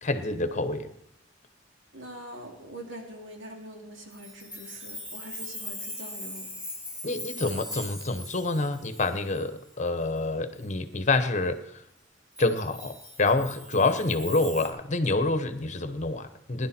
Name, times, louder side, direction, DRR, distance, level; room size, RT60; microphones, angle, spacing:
voice 1, 0.0-0.9 7.0-11.6 12.4-16.7, left 2 dB, 40° left, 10 dB, 1.1 m, -27 dB
voice 2, 1.9-6.5, right 1 dB, 90° right, 1 dB, 3.0 m, -43 dB
Chime, 4.1-10.2 10.6-10.7 12.4-14.7, left 1 dB, 5° right, 3.1 m, -41 dB
20.0 x 11.0 x 4.5 m, 0.80 s
head